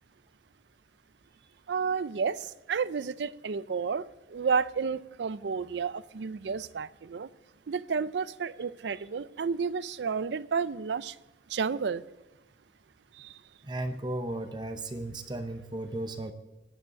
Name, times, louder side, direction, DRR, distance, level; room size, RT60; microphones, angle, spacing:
voice 1, 1.7-7.3 7.7-11.2 11.5-12.0 13.1-13.4, right 5 dB, 75° right, 17 dB, 0.4 m, -31 dB
voice 2, 13.7-16.3, right 1 dB, 25° right, 7 dB, 0.7 m, -35 dB
11.0 x 8.6 x 8.7 m, 1.0 s
head